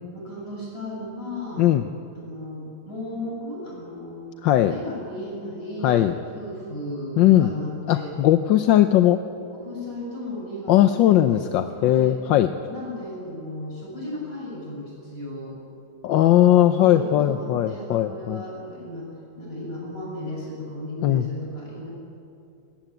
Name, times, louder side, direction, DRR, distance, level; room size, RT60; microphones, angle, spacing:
voice 1, 0.1-1.7 2.1-4.3 4.7-8.1 9.5-12.2 12.7-15.6 16.8-19.1 19.4-21.9, left 1 dB, 30° left, -4 dB, 8.3 m, -35 dB
voice 2, 4.4-4.8 5.8-6.2 7.2-7.5 7.9-9.2 10.7-12.5 16.0-18.4 21.0-21.2, left 12 dB, 75° left, 9 dB, 1.4 m, -18 dB
22.5 x 19.0 x 9.0 m, 2.6 s
omnidirectional pair, 2.1 m